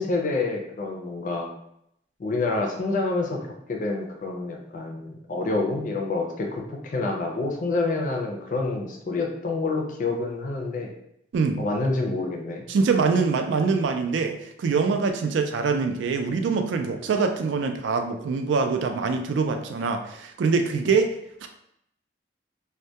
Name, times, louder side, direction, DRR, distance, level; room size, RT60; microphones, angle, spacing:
voice 1, 0.0-1.5 2.2-10.9 11.6-12.6, left 3 dB, 45° left, 1 dB, 0.4 m, -27 dB
voice 2, 12.7-21.2 21.4-21.5, right 4 dB, 75° right, 6 dB, 0.3 m, -24 dB
2.1 x 2.1 x 2.7 m, 0.77 s
head